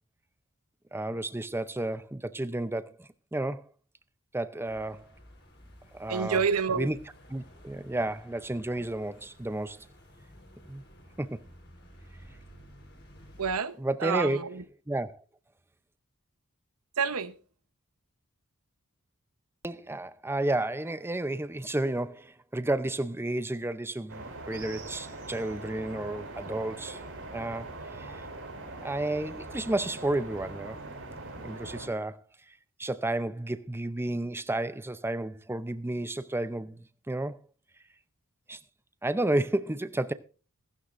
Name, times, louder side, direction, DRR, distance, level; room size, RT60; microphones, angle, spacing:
voice 1, 0.9-3.7 4.3-5.1 5.9-6.4 6.8-7.0 7.3-9.9 10.7-10.8 11.2-11.4 13.8-14.4 14.9-15.2 19.6-27.0 27.3-28.3 28.8-30.8 31.4-32.2 32.5-37.4 38.5-38.6 39.0-40.1, right 1 dB, 10° right, 0.6 m, -32 dB
sound 1, 4.6-13.5, equal, 50° left, 4.2 m, -53 dB
voice 2, 6.1-6.9 13.4-13.7 14.0-14.6 17.0-17.3, right 5 dB, 85° right, 0.9 m, -28 dB
sound 2, 24.1-31.9, right 2 dB, 65° right, 4.7 m, -42 dB
16.0 x 15.0 x 2.6 m
head